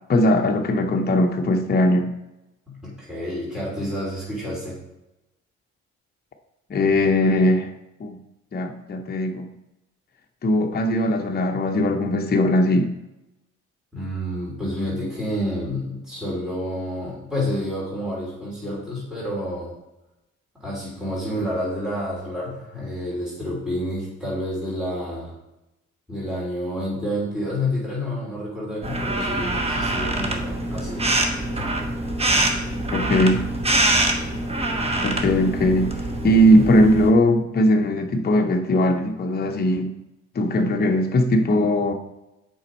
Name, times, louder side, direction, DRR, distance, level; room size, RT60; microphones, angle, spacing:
voice 1, 0.1-2.1 6.7-7.7 8.0-8.2 8.5-9.5 10.4-12.9 32.9-33.4 35.0-35.9 36.2-39.9 40.3-41.9, left 1 dB, 30° left, 3 dB, 0.7 m, -19 dB
voice 2, 2.7-4.8 13.9-19.7 20.6-25.3 26.1-31.0, left 1 dB, ahead, -7 dB, 2.9 m, -29 dB
sound 1, 28.8-37.1, right 2 dB, 20° right, 1.1 m, -24 dB
7.2 x 5.3 x 4.3 m, 0.95 s
cardioid pair, 90°, 30 cm